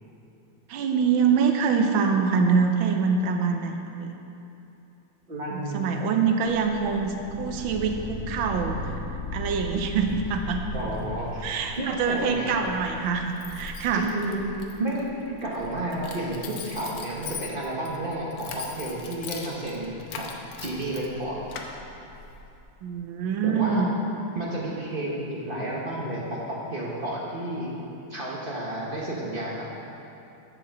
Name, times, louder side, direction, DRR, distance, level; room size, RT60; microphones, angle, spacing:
voice 1, 0.7-4.2 5.5-8.9 9.3-10.6 11.4-14.1 22.8-23.9, right 5 dB, 90° right, 4 dB, 1.5 m, -25 dB
voice 2, 5.3-6.0 10.7-12.5 13.9-14.4 14.8-20.3 20.6-21.4 23.4-23.9 24.3-27.7 28.1-29.7, right 1 dB, 35° right, -4 dB, 1.2 m, -31 dB
sound 1, 6.5-12.6, left 3 dB, 55° left, 0.9 m, -37 dB
Keys jangling, 9.6-22.6, left 5 dB, 80° left, 1.5 m, -42 dB
7.7 x 7.6 x 6.5 m, 2.8 s
omnidirectional pair, 2.1 m